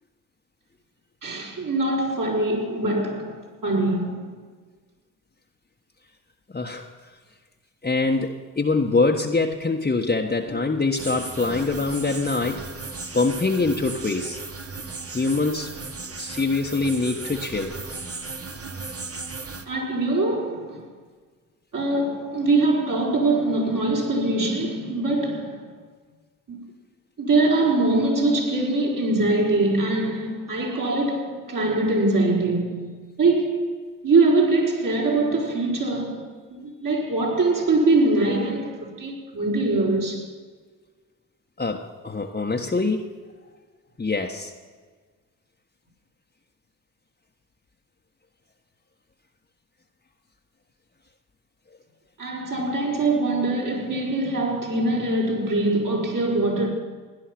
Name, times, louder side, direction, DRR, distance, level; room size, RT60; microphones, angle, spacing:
voice 1, 1.2-4.4 19.7-20.9 21.7-25.8 26.5-26.7 27.2-33.7 34.0-40.3 52.2-56.7, right 2 dB, 50° right, 4.9 m, -23 dB
voice 2, 6.5-6.9 7.8-12.6 13.1-14.4 15.1-15.7 16.2-17.7 41.6-43.1 44.0-44.5, left 3 dB, 25° left, 1.3 m, -24 dB
sound 1, 11.0-19.7, right 4 dB, 35° right, 1.6 m, -36 dB
17.0 x 11.0 x 6.0 m
supercardioid pair, 50°, 39 cm